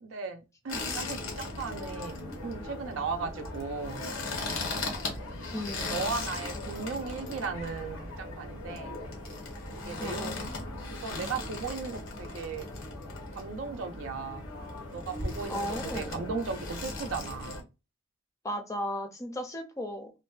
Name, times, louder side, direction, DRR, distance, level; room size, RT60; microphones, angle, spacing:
voice 1, 0.0-2.2 2.4-4.0 5.7-9.0 9.8-10.4 10.9-12.7 13.3-14.4 14.9-17.6, right 5 dB, 80° right, 0.4 m, -36 dB
sound 1, 0.7-17.6, left 2 dB, 90° left, 0.8 m, -38 dB
voice 2, 5.5-6.0 10.0-10.4 15.5-16.2 18.4-20.1, equal, 15° left, 0.4 m, -35 dB
2.5 x 2.1 x 2.3 m
head